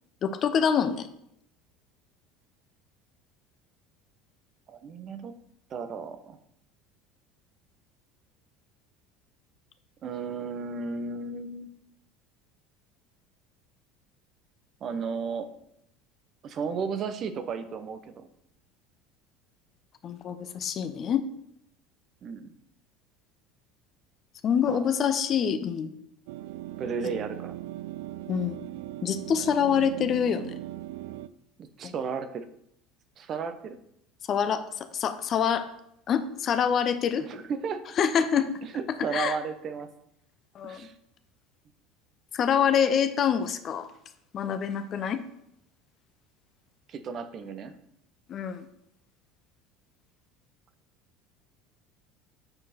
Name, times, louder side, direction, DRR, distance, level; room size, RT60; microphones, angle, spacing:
voice 1, 0.2-1.1 20.0-21.2 24.4-25.9 28.3-28.6 29.0-30.5 31.8-31.9 34.3-35.7 36.1-37.2 38.0-38.6 39.1-39.4 40.5-40.8 42.3-43.9 44.3-45.2 48.3-48.7, left 7 dB, 45° left, 10 dB, 0.7 m, -26 dB
voice 2, 4.7-5.3 5.7-6.4 10.0-11.7 14.8-15.5 16.4-18.3 22.2-22.5 24.7-24.9 26.8-27.5 31.6-32.4 33.2-33.8 37.3-37.8 38.7-39.9 40.6-40.9 46.9-47.7, right 5 dB, 45° right, 9 dB, 0.8 m, -34 dB
sound 1, 26.3-31.3, right 14 dB, 70° right, 0.3 m, -39 dB
7.7 x 4.6 x 4.3 m, 0.76 s
hypercardioid pair, 70°, 0 cm